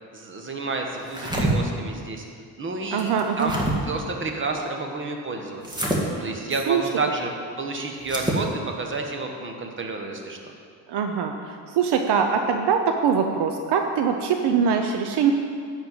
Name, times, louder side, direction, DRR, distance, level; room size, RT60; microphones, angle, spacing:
voice 1, 0.1-2.2 2.6-3.6 3.8-7.3 7.6-10.4, right 3 dB, 25° right, 2 dB, 1.3 m, -30 dB
sound 1, 1.0-1.5 3.0-3.7 5.6-6.0 8.0-8.4, right 1 dB, 10° right, 1.6 m, -26 dB
voice 2, 2.9-3.5 6.1-6.3 6.7-6.8 10.9-15.3, right 6 dB, 65° right, 5 dB, 0.8 m, -23 dB
11.5 x 4.5 x 7.8 m, 2.2 s
cardioid pair, 115°, 43 cm